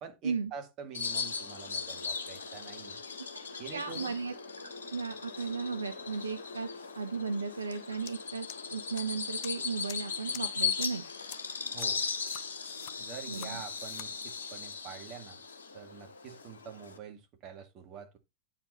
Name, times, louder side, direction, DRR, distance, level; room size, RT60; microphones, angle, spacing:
voice 1, 0.0-3.0 3.6-4.2 11.7-12.1 13.0-15.4 15.7-18.2, right 7 dB, 35° right, 2.1 m, -46 dB
Bird vocalization bird call bird song, 0.9-17.0, left 5 dB, 70° left, 1.2 m, -38 dB
voice 2, 3.7-4.3 4.9-11.0 13.3-13.6, right 5 dB, 75° right, 0.6 m, -35 dB
sound 1, 8.1-8.2 8.5-9.0 9.4-9.5 9.9-10.0 10.3-10.4 10.8-10.9 11.3-11.4 11.8-11.9 12.3-12.9 13.3-13.5 13.8-14.1, left 12 dB, 45° left, 0.7 m, -44 dB
8.9 x 5.0 x 4.3 m
figure-of-eight pair, 90°, 0 cm